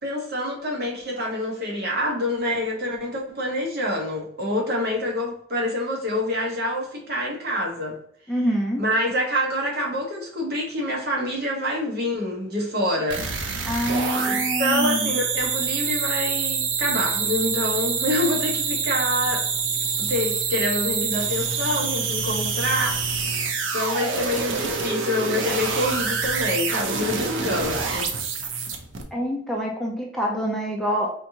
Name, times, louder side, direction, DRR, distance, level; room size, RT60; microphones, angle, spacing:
voice 1, 0.0-8.0 8.8-13.2 14.1-19.5 20.0-23.4 23.7-28.3, left 1 dB, 55° right, -1 dB, 1.1 m, -26 dB
voice 2, 8.3-8.8 13.6-15.1 29.1-31.1, equal, ahead, -2 dB, 0.5 m, -26 dB
sound 1, 13.1-29.0, right 5 dB, 80° right, 0.6 m, -26 dB
4.3 x 2.8 x 2.8 m, 0.64 s
head